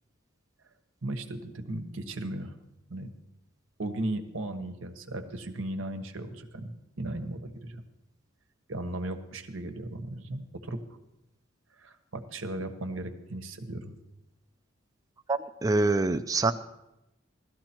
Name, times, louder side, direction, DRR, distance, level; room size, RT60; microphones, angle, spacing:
voice 1, 1.0-2.5 2.9-3.1 3.8-7.8 8.7-10.8 11.8-13.9, right 1 dB, 85° right, 7 dB, 1.3 m, -36 dB
voice 2, 15.3-16.5, right 3 dB, 15° right, 8 dB, 0.4 m, -25 dB
16.5 x 13.0 x 4.4 m, 0.91 s
head